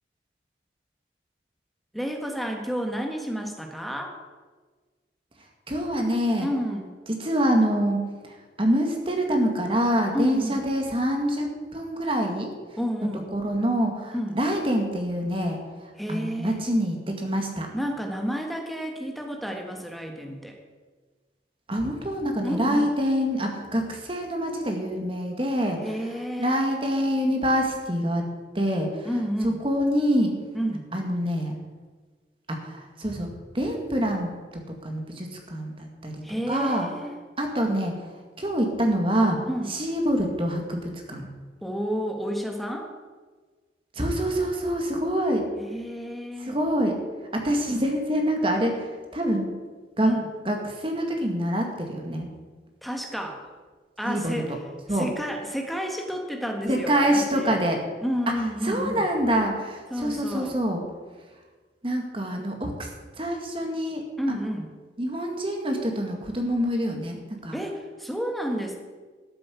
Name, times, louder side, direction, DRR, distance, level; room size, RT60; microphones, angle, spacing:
voice 1, 1.9-4.1 6.4-6.9 10.1-10.6 12.8-13.2 14.1-14.4 16.0-16.6 17.7-20.6 22.4-22.9 25.8-26.6 29.0-29.6 30.5-30.9 36.2-37.2 39.5-39.7 41.6-42.9 45.6-46.6 50.0-50.2 52.8-53.4 54.0-54.6 54.9-57.5 58.0-59.0 59.9-60.5 64.2-64.7 67.5-68.8, equal, ahead, 2 dB, 1.6 m, -30 dB
voice 2, 5.7-6.5 7.2-12.5 13.3-17.7 21.7-25.8 26.4-28.3 28.5-29.1 29.6-30.3 30.9-31.5 32.5-33.3 33.5-36.9 37.4-38.0 38.4-39.4 39.7-41.3 44.0-45.5 46.4-47.0 47.3-49.5 50.0-50.1 50.5-52.3 54.1-54.4 54.9-55.1 56.7-57.8 58.6-60.8 61.8-62.9 63.2-64.0 65.0-67.6, equal, 30° right, 2 dB, 2.0 m, -26 dB
13.0 x 7.7 x 8.3 m, 1.4 s
head